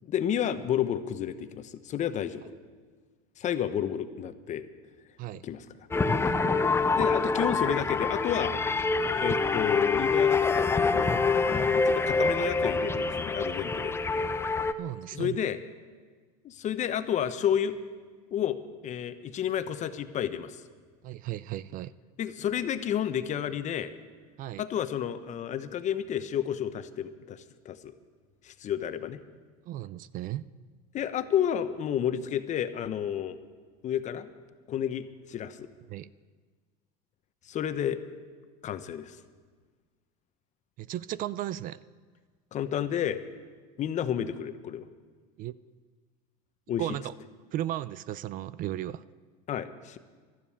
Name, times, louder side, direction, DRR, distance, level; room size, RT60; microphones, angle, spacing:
voice 1, 0.1-2.4 3.4-4.7 5.4-5.6 6.8-8.6 9.2-11.2 11.5-14.0 15.1-15.6 16.4-17.8 18.3-18.6 18.8-20.6 22.2-23.9 24.6-27.9 28.4-29.2 30.9-33.4 33.8-34.3 34.7-35.7 37.4-38.0 38.6-39.2 42.5-43.2 43.8-44.9 46.7-46.8 49.5-50.0, left 9 dB, 35° left, 11 dB, 1.0 m, -31 dB
sound 1, 5.9-14.7, left 4 dB, 10° left, 0.6 m, -26 dB
voice 2, 14.8-15.4 21.0-21.9 24.4-24.6 29.7-30.5 35.9-36.1 40.8-41.8 45.4-45.5 46.8-47.1 47.5-49.0, right 13 dB, 45° right, 19 dB, 0.4 m, -35 dB
12.5 x 12.5 x 8.6 m, 1.5 s
supercardioid pair, 115°, 20 cm